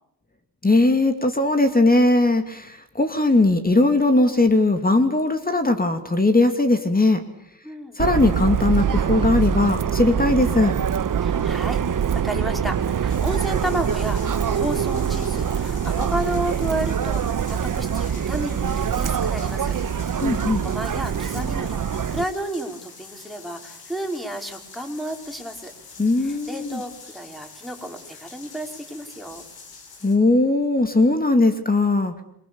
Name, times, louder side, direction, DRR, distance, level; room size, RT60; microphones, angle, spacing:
voice 1, 0.6-7.2 8.0-10.7 20.2-20.6 26.0-26.8 30.0-32.2, left 2 dB, 20° left, 7 dB, 2.6 m, -19 dB
voice 2, 7.6-8.0 11.2-19.7 20.1-25.7 26.2-29.4, right 1 dB, ahead, 4 dB, 5.1 m, -32 dB
Subway metro underground, 8.0-22.2, right 8 dB, 55° right, 1.3 m, -24 dB
sound 1, 13.1-30.2, left 4 dB, 65° left, 6.8 m, -45 dB
27.5 x 23.5 x 7.1 m, 0.72 s
cardioid pair, 75°, 39 cm